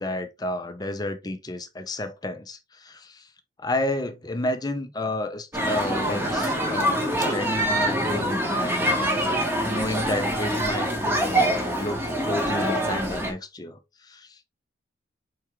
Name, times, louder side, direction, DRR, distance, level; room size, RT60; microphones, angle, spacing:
voice 1, 0.0-3.3 3.6-9.3 9.6-12.0 12.3-14.4, left 1 dB, 20° left, 0.6 m, -31 dB
sound 1, 5.5-13.3, right 1 dB, 10° right, 1.0 m, -25 dB
4.7 x 3.5 x 3.0 m
head